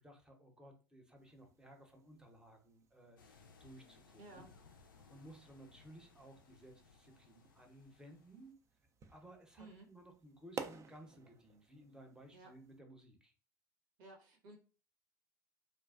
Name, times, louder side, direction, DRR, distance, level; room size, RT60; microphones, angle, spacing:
voice 1, 0.0-4.5 5.1-8.6 9.1-13.3, right 1 dB, 5° right, 3 dB, 0.7 m, -58 dB
sound 1, 1.1-12.8, right 5 dB, 30° right, 0.3 m, -55 dB
sound 2, 3.2-8.5, left 5 dB, 85° left, 0.4 m, -64 dB
voice 2, 9.6-9.9 12.3-12.5 14.0-14.6, right 2 dB, 65° right, 1 dB, 0.8 m, -55 dB
2.4 x 2.2 x 2.3 m, 0.36 s
hypercardioid pair, 75°, 11 cm